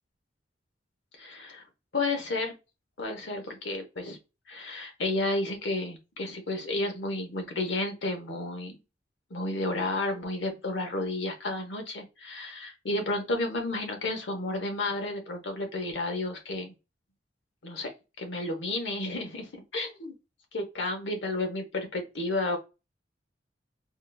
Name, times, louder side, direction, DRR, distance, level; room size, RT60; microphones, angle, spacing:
voice 1, 1.2-1.6 1.9-2.5 3.0-4.2 4.5-8.8 9.3-16.7 17.6-17.9 18.2-20.1 20.5-22.6, left 2 dB, 80° left, 0.9 m, -32 dB
3.7 x 2.3 x 2.2 m
head